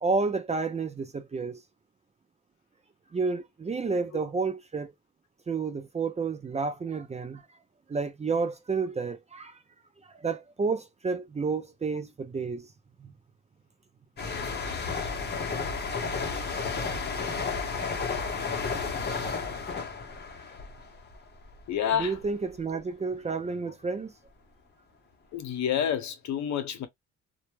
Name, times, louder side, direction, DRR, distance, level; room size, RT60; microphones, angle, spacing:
voice 1, 0.0-1.6 3.1-4.9 5.5-7.6 7.9-9.6 10.0-12.7 13.0-13.1 16.4-16.8 21.9-24.1, right 4 dB, 25° right, 0.4 m, -31 dB
sound 1, 14.2-21.6 21.9-22.2, left 4 dB, 35° left, 0.8 m, -32 dB
voice 2, 21.7-22.2 25.3-26.9, left 9 dB, 65° left, 0.7 m, -28 dB
2.1 x 2.1 x 3.0 m
cardioid pair, 90°, 30 cm